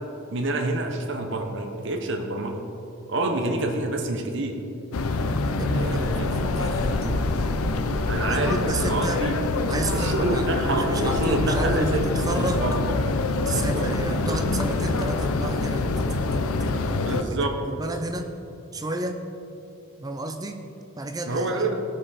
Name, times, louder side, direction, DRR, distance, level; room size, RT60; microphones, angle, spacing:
voice 1, 0.0-2.6 3.1-4.6 5.7-6.3 8.1-9.3 9.9-12.0 12.4-12.7 13.5-14.4 17.0-17.6 21.3-21.8, right 2 dB, 55° right, 3 dB, 0.9 m, -28 dB
sound 1, 4.9-17.2, left 3 dB, 85° left, 0.6 m, -25 dB
voice 2, 5.5-7.3 8.3-9.3 9.7-12.7 13.5-16.8 17.1-18.3 18.7-19.3 20.0-20.6 21.0-21.7, right 2 dB, 15° right, 7 dB, 0.5 m, -31 dB
16.0 x 5.8 x 4.2 m, 3.0 s
head